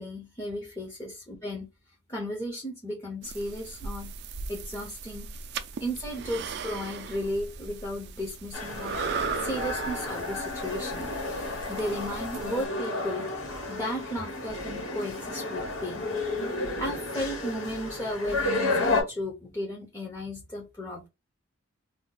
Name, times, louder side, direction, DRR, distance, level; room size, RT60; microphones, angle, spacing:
voice 1, 0.0-1.7 2.1-4.1 4.5-5.3 5.8-8.9 9.4-11.1 11.7-16.1 16.6-21.1, equal, 15° left, 0.6 m, -35 dB
sound 1, 3.2-12.7, right 5 dB, 50° right, 0.3 m, -38 dB
sound 2, 8.5-19.0, left 2 dB, 80° left, 1.5 m, -32 dB
2.6 x 2.2 x 3.7 m
head